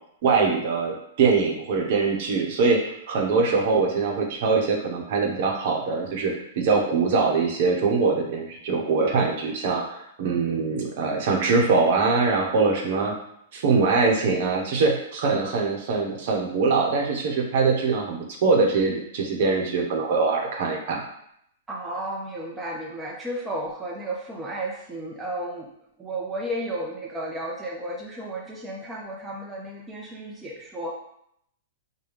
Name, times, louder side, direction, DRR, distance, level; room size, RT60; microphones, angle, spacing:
voice 1, 0.2-13.1 13.5-21.0, right 4 dB, 60° right, 1 dB, 1.0 m, -23 dB
voice 2, 21.7-25.7 26.0-30.9, right 1 dB, 15° right, -2 dB, 0.6 m, -33 dB
4.9 x 2.2 x 3.4 m, 0.72 s
hypercardioid pair, 120°, 0 cm